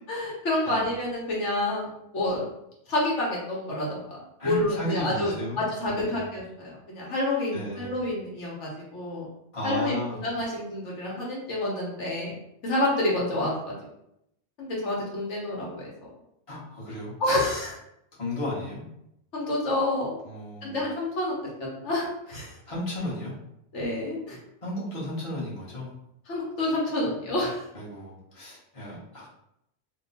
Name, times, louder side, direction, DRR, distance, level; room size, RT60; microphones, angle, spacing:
voice 1, 0.1-2.5 2.9-9.2 9.6-9.9 10.2-12.3 12.6-13.8 14.6-16.1 17.2-17.8 19.3-20.2 20.6-22.6 23.7-24.4 26.3-27.6, left 1 dB, 75° left, -4 dB, 1.2 m, -28 dB
voice 2, 4.4-6.3 7.5-7.9 9.5-10.3 16.5-17.1 18.2-18.8 20.2-20.8 22.7-23.3 24.6-25.9 27.7-29.3, equal, 30° left, -7 dB, 1.1 m, -34 dB
2.9 x 2.2 x 4.0 m, 0.79 s
omnidirectional pair, 1.2 m